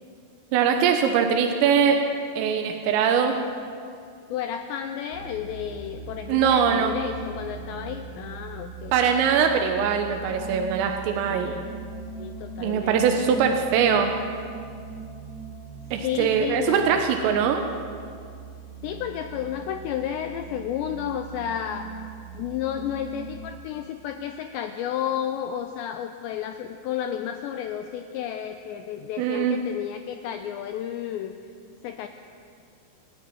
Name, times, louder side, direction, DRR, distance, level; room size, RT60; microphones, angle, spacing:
voice 1, 0.5-2.0 2.4-3.4 6.3-6.9 8.9-11.6 12.6-14.1 15.9-17.7 29.2-29.6, right 7 dB, 85° right, 4 dB, 3.6 m, -22 dB
voice 2, 4.3-8.9 11.2-11.6 12.2-13.2 16.0-17.0 18.8-21.9 22.3-31.3 31.8-32.1, left 9 dB, 90° left, 7 dB, 2.5 m, -32 dB
sound 1, 5.1-23.5, right 5 dB, 35° left, 1.0 m, -40 dB
28.0 x 11.0 x 8.8 m, 2.3 s
omnidirectional pair, 5.9 m